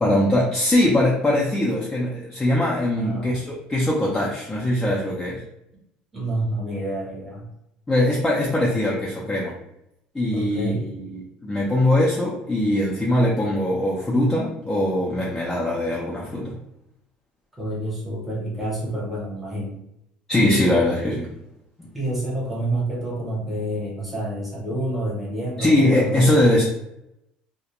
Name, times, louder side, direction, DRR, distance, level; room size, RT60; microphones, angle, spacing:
voice 1, 0.0-5.4 7.9-9.6 10.1-16.5 20.3-21.3 21.8-21.9 25.6-26.6, left 1 dB, 10° left, -4 dB, 0.4 m, -21 dB
voice 2, 2.9-3.3 6.1-7.5 10.3-10.9 17.6-19.8 21.9-26.3, right 1 dB, 5° right, -5 dB, 0.8 m, -28 dB
2.3 x 2.1 x 2.8 m, 0.82 s
cardioid pair, 160°, 3 cm